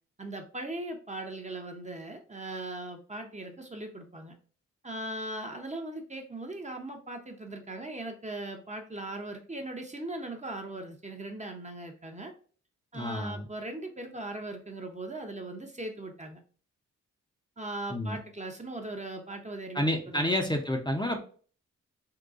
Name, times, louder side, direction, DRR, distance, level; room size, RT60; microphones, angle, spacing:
voice 1, 0.2-4.3 4.8-12.3 12.9-16.4 17.6-20.3, right 2 dB, 20° right, 3 dB, 0.7 m, -39 dB
voice 2, 12.9-13.5 17.9-18.2 19.7-21.2, left 1 dB, 15° left, 2 dB, 0.6 m, -29 dB
3.8 x 2.2 x 2.4 m, 0.42 s
supercardioid pair, 40°, 32 cm